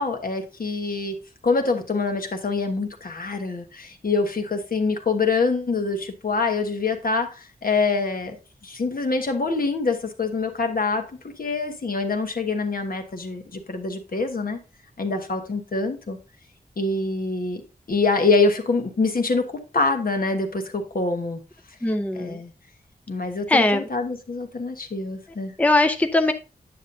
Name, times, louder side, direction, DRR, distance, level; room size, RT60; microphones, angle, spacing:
voice 1, 0.0-8.4 8.6-11.1 11.4-14.6 15.0-16.2 16.8-17.6 17.9-21.4 22.1-22.5 23.1-25.5, left 3 dB, 65° left, 4 dB, 1.3 m, -25 dB
voice 2, 21.8-22.4 23.5-23.9 25.6-26.3, left 2 dB, 10° left, 8 dB, 0.5 m, -20 dB
9.3 x 7.0 x 2.7 m, 0.30 s
wide cardioid pair, 100°, 16 cm